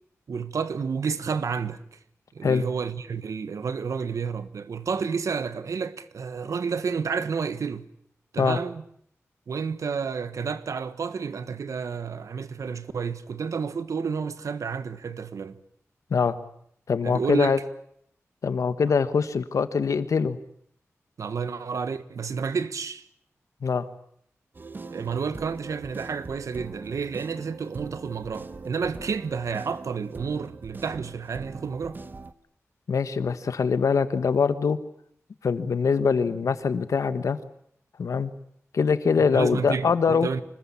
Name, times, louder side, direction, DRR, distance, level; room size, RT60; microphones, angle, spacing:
voice 1, 0.3-2.0 2.3-7.9 8.3-8.8 9.5-15.6 17.0-17.5 21.2-23.0 24.9-32.0 39.2-40.4, right 5 dB, 80° right, 1.4 m, -30 dB
voice 2, 16.9-17.6 18.4-20.4 23.6-23.9 32.9-34.8 35.4-37.4 38.0-38.3 38.7-40.3, left 5 dB, 85° left, 1.5 m, -23 dB
sound 1, 24.5-32.3, right 3 dB, 40° right, 1.1 m, -42 dB
25.5 x 20.5 x 8.6 m
wide cardioid pair, 130°, 5 cm